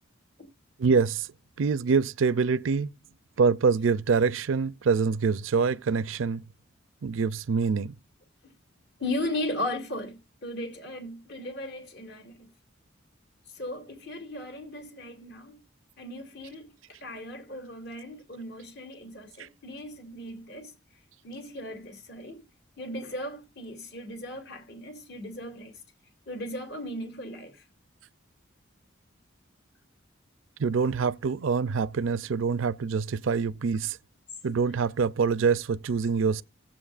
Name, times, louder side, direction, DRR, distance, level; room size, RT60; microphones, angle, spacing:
voice 1, 0.8-1.3 1.6-2.9 3.4-6.4 7.0-8.0 19.4-19.5 30.6-34.0 34.4-36.4, right 5 dB, 75° right, 0.5 m, -25 dB
voice 2, 9.0-12.5 13.5-15.6 16.0-16.7 17.0-20.7 21.2-22.4 22.8-25.7 26.3-27.6 34.4-34.7, left 1 dB, 55° left, 2.9 m, -37 dB
16.5 x 7.5 x 2.5 m
head